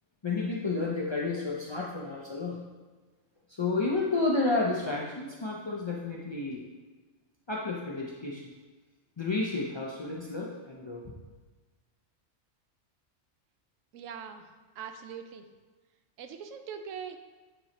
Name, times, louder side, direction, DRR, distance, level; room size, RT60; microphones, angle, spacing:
voice 1, 0.2-2.6 3.5-6.7 7.5-8.4 9.2-11.0, left 3 dB, 50° left, -3 dB, 0.3 m, -31 dB
voice 2, 13.9-14.5 14.8-15.4 16.2-17.2, right 7 dB, 75° right, 7 dB, 1.0 m, -41 dB
9.0 x 3.1 x 4.1 m, 1.3 s
omnidirectional pair, 1.4 m